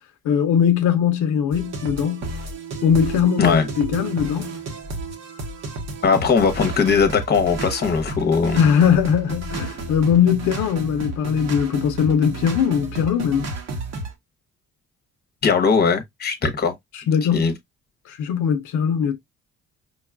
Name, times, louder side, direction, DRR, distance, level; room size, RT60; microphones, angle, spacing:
voice 1, 0.2-2.2 2.8-4.5 8.5-13.5 16.9-17.5 18.1-19.2, left 8 dB, 80° left, 0.6 m, -20 dB
sound 1, 1.5-14.1, right 2 dB, 60° right, 1.0 m, -31 dB
voice 2, 6.0-8.6 15.4-16.7 17.3-17.5, left 5 dB, 35° left, 0.8 m, -19 dB
5.2 x 2.3 x 2.3 m
cardioid pair, 90°, 30 cm